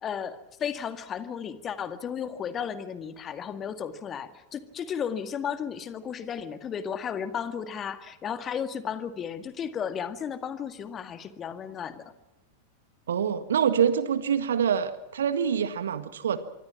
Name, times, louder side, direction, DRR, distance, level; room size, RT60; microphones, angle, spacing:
voice 1, 0.0-12.1, left 7 dB, 25° left, 10 dB, 1.9 m, -34 dB
voice 2, 13.1-16.4, right 8 dB, 65° right, 12 dB, 1.8 m, -25 dB
26.0 x 24.0 x 6.0 m, 0.92 s
figure-of-eight pair, 90°, 0 cm